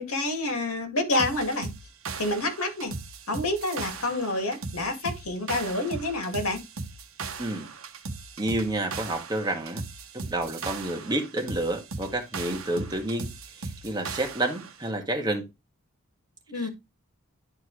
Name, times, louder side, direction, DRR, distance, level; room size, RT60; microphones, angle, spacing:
voice 1, 0.0-1.7 2.2-2.9 3.3-6.6 16.5-16.7, left 2 dB, 85° left, 2.2 m, -28 dB
sound 1, 1.2-14.8, right 4 dB, 70° right, 1.1 m, -38 dB
voice 2, 8.4-9.8 10.3-13.3 13.6-15.4 16.5-16.7, right 1 dB, 20° right, 1.8 m, -29 dB
11.5 x 4.4 x 3.2 m
head